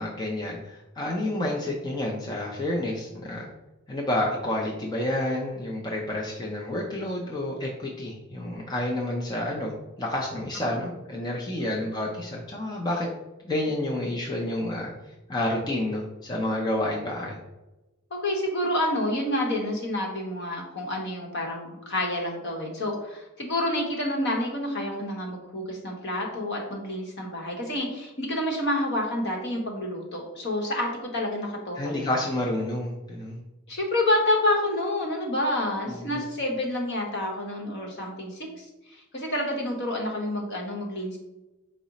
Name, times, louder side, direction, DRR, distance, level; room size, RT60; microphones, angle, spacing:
voice 1, 0.0-3.5 3.9-9.7 10.0-13.1 13.4-14.9 15.3-17.3 31.8-33.4 35.9-36.2, left 1 dB, 20° left, -2 dB, 0.5 m, -29 dB
voice 2, 18.1-32.1 33.7-41.2, left 1 dB, 55° left, 0 dB, 0.9 m, -28 dB
4.7 x 2.1 x 3.9 m, 1.0 s
head